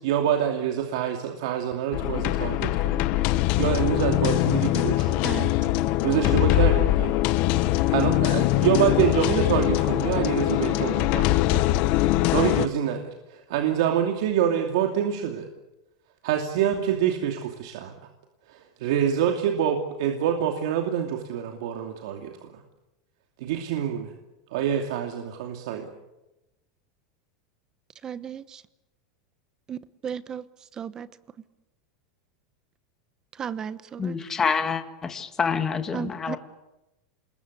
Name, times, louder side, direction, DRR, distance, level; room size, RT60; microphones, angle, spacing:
voice 1, 0.0-5.2 6.0-7.2 7.9-15.5 16.2-17.9 18.5-22.6 23.4-24.1 24.5-25.9, right 9 dB, 70° right, 4 dB, 2.7 m, -26 dB
sound 1, 1.9-12.7, left 16 dB, 50° left, 0.9 m, -22 dB
voice 2, 28.0-28.6 29.7-30.4 30.8-31.1 33.4-34.2 35.9-36.4, right 8 dB, 25° right, 15 dB, 1.0 m, -34 dB
voice 3, 34.0-36.4, left 5 dB, 20° left, 7 dB, 1.9 m, -27 dB
27.5 x 21.0 x 8.3 m, 0.97 s
supercardioid pair, 140°, 3 cm